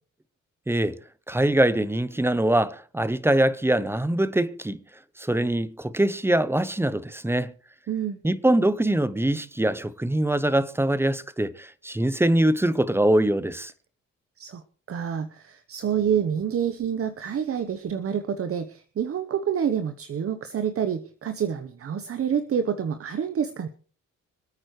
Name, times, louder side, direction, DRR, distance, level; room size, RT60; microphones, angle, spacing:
voice 1, 0.7-1.0 1.3-4.8 5.2-7.5 8.2-13.7, right 1 dB, 10° right, 0.8 m, -23 dB
voice 2, 7.9-8.2 14.4-23.7, right 8 dB, 50° right, 1.0 m, -28 dB
26.0 x 8.9 x 3.2 m
cardioid pair, 90°, 30 cm